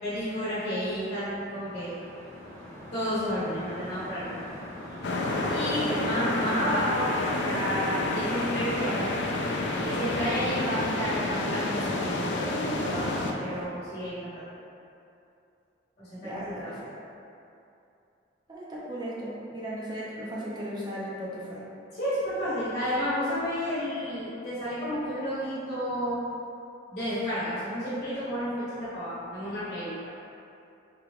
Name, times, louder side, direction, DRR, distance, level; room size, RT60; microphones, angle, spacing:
voice 1, 0.0-1.9 2.9-4.6 5.5-9.1 9.8-14.4 16.0-16.7 21.9-26.2 26.9-30.1, equal, 40° left, -13 dB, 1.0 m, -31 dB
sound 1, 1.1-13.6, equal, 10° left, 0.8 m, -42 dB
sound 2, 5.0-13.3, left 2 dB, 65° left, 0.3 m, -29 dB
voice 2, 5.3-6.3 16.2-16.9 18.5-21.6, equal, 20° right, -7 dB, 0.5 m, -37 dB
3.7 x 3.1 x 2.3 m, 2.7 s
head